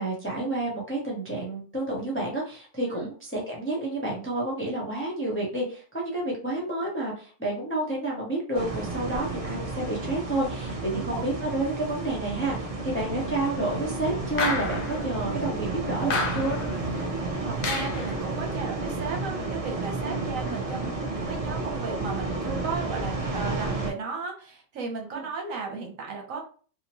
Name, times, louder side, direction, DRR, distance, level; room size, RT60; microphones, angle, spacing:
voice 1, 0.0-16.6 25.1-25.2, right 2 dB, 15° left, -4 dB, 0.4 m, -30 dB
sound 1, 8.5-23.9, right 3 dB, 40° right, 0.6 m, -31 dB
voice 2, 10.9-11.2 17.0-17.1 17.4-26.4, right 4 dB, 85° right, 1 dB, 1.2 m, -35 dB
sound 2, 14.4-15.0 16.1-16.8 17.6-18.1, left 3 dB, 60° left, 0.6 m, -29 dB
3.0 x 2.0 x 2.9 m, 0.41 s
omnidirectional pair, 1.3 m